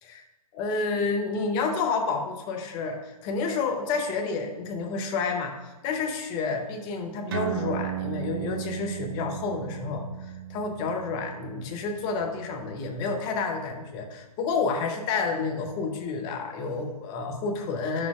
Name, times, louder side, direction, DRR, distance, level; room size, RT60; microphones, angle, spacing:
voice 1, 0.5-5.6 5.8-18.1, left 4 dB, 20° left, 3 dB, 0.8 m, -30 dB
sound 1, 7.3-14.2, right 9 dB, 35° right, 0.5 m, -36 dB
9.5 x 6.4 x 2.4 m, 1.2 s
figure-of-eight pair, 130°, 20 cm